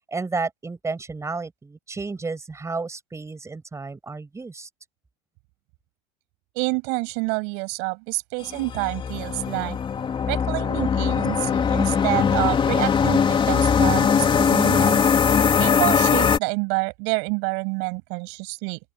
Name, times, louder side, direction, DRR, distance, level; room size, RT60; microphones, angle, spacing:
voice 1, 0.1-4.7, right 3 dB, 15° right, 7.3 m, -32 dB
voice 2, 6.6-9.8 10.3-15.0 15.6-18.8, right 34 dB, 70° right, 7.2 m, -28 dB
sound 1, 8.5-16.4, left 6 dB, 30° left, 3.1 m, -20 dB
open air
supercardioid pair, 105°, 18 cm